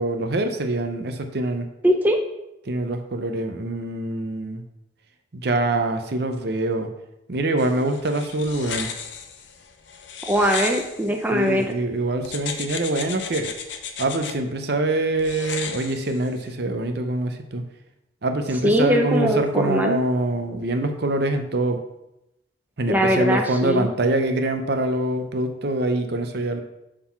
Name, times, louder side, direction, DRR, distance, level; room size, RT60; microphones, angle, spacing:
voice 1, 0.0-1.7 2.7-4.6 5.3-6.9 7.3-8.9 11.3-13.5 14.0-17.7 18.2-21.8 22.8-26.6, right 2 dB, 55° right, 6 dB, 0.7 m, -24 dB
voice 2, 1.8-2.2 10.3-11.7 18.6-20.0 22.9-23.9, equal, 10° right, 2 dB, 0.5 m, -21 dB
sound 1, 7.6-11.7 12.2-14.3 15.2-16.5, left 6 dB, 70° left, 0.7 m, -35 dB
6.7 x 3.7 x 5.8 m, 0.89 s
head